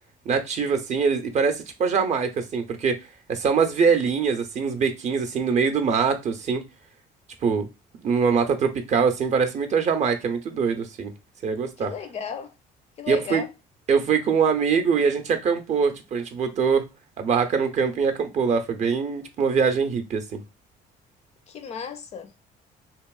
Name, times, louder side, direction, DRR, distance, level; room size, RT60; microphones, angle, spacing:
voice 1, 0.3-3.0 3.3-6.6 7.4-7.7 8.0-11.1 11.4-11.9 13.1-13.4 13.9-16.8 17.2-20.4, right 6 dB, 45° right, 0.5 m, -23 dB
voice 2, 11.8-12.5 13.0-13.5 21.5-22.3, left 7 dB, 40° left, 0.4 m, -34 dB
2.9 x 2.6 x 2.3 m
cardioid pair, 110°, 17 cm